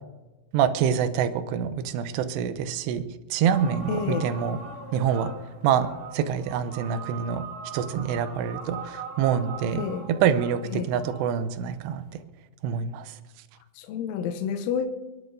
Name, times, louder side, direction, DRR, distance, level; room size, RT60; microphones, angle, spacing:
voice 1, 0.5-3.0 3.3-4.6 4.9-5.3 5.6-7.4 7.7-9.9 10.2-12.2 12.6-13.2, right 8 dB, 80° right, 2.7 m, -26 dB
sound 1, 3.5-12.2, right 4 dB, 60° right, 2.7 m, -41 dB
voice 2, 3.9-4.3 9.7-10.1 10.7-11.1 13.8-14.9, left 7 dB, 90° left, 3.3 m, -29 dB
29.5 x 10.5 x 2.7 m
omnidirectional pair, 5.5 m